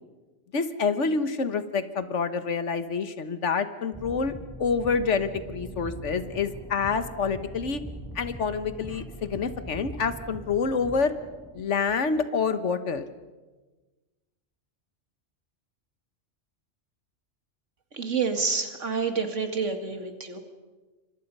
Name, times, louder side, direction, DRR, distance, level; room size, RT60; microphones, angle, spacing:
voice 1, 0.5-4.3 4.6-7.8 8.1-11.1 11.5-13.0, left 5 dB, 75° left, 10 dB, 1.6 m, -27 dB
sound 1, 3.9-11.6, right 1 dB, ahead, 4.5 m, -42 dB
voice 2, 17.9-20.4, right 5 dB, 90° right, 6 dB, 2.4 m, -28 dB
27.5 x 25.0 x 5.5 m, 1.2 s
omnidirectional pair, 1.2 m